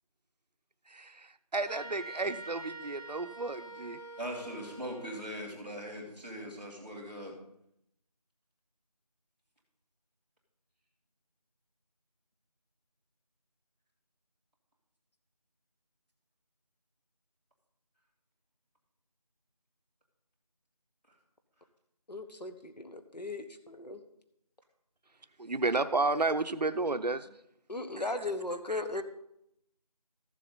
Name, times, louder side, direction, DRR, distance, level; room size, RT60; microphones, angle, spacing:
voice 1, 0.9-4.0 25.4-27.3 28.7-29.0, right 3 dB, 85° right, 11 dB, 0.7 m, -32 dB
sound 1, 1.7-5.3, right 2 dB, 20° left, 4.5 m, -46 dB
voice 2, 4.2-7.3, equal, 15° right, -10 dB, 2.2 m, -40 dB
voice 3, 22.1-24.0 27.7-29.0, left 2 dB, 90° left, 7 dB, 1.4 m, -37 dB
14.0 x 7.4 x 4.1 m, 0.78 s
figure-of-eight pair, 175°, 21 cm